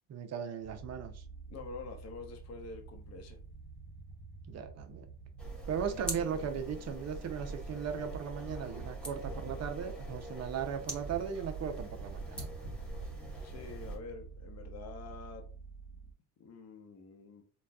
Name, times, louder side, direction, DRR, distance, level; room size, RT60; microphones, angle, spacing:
voice 1, 0.1-1.2 4.5-5.1 5.7-12.5, right 7 dB, 40° right, 6 dB, 0.6 m, -37 dB
sound 1, 0.6-16.1, right 4 dB, 65° left, 1.1 m, -50 dB
voice 2, 1.5-3.4 13.4-15.5 16.4-17.4, left 4 dB, 40° left, 4 dB, 0.8 m, -47 dB
sound 2, 5.4-14.0, right 2 dB, ahead, 0.8 m, -42 dB
4.0 x 2.3 x 2.3 m, 0.39 s
cardioid pair, 115°, 40 cm